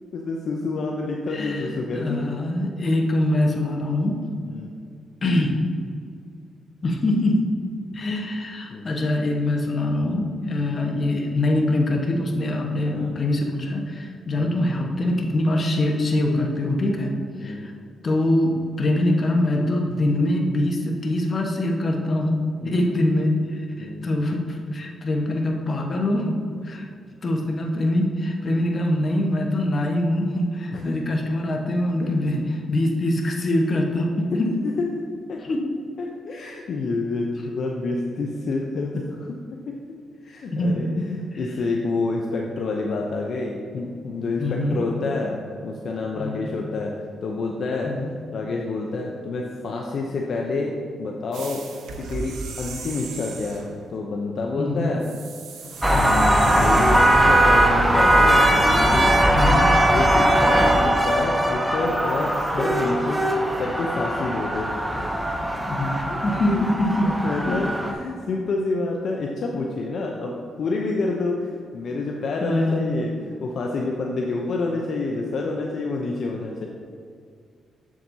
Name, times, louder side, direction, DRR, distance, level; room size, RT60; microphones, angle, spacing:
voice 1, 0.1-2.3 4.5-4.7 8.7-8.9 10.6-10.8 12.8-13.1 14.3-14.6 17.4-17.6 22.6-22.8 23.8-24.1 30.7-31.0 32.0-32.1 34.6-34.7 35.3-35.4 36.0-39.6 40.2-46.9 47.2-51.6 52.0-55.1 55.7-59.2 59.6-63.2 63.6-65.1 66.1-66.2 66.5-76.7, left 3 dB, 65° left, 0 dB, 0.6 m, -28 dB
voice 2, 1.3-4.2 5.2-5.6 6.8-7.4 7.9-17.1 17.4-17.7 18.0-18.5 18.8-26.3 26.6-26.9 27.2-34.5 35.4-35.6 40.5-40.9 41.3-41.4 44.4-44.8 46.2-46.5 47.8-48.1 54.6-54.9 55.9-56.2 59.3-59.7 65.7-65.9 66.2-67.1 67.4-67.5 72.4-72.9, left 1 dB, 45° left, 0 dB, 1.2 m, -23 dB
sound 1, 51.3-53.7 55.0-57.7, right 3 dB, 85° right, 0.9 m, -36 dB
sound 2, 55.8-67.9, right 1 dB, 5° right, 0.7 m, -20 dB
7.4 x 7.3 x 2.7 m, 2.2 s
cardioid pair, 80°, 0 cm